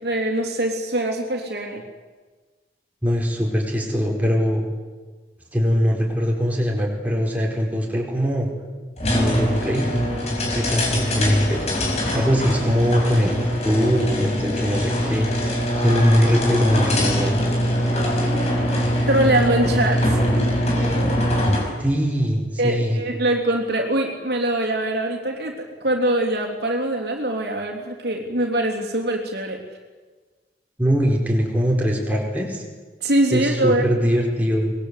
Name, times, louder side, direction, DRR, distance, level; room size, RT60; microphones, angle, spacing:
voice 1, 0.0-1.8 19.1-20.2 22.6-29.6 33.0-33.8, right 1 dB, 60° right, 1 dB, 3.5 m, -23 dB
voice 2, 3.0-4.6 5.5-8.5 9.1-9.9 10.4-11.6 12.1-17.3 21.8-23.0 30.8-32.6 33.3-34.7, equal, 10° right, -1 dB, 4.9 m, -22 dB
sound 1, 9.0-21.8, equal, 35° left, 5.7 m, -22 dB
24.5 x 21.0 x 8.4 m, 1.3 s
head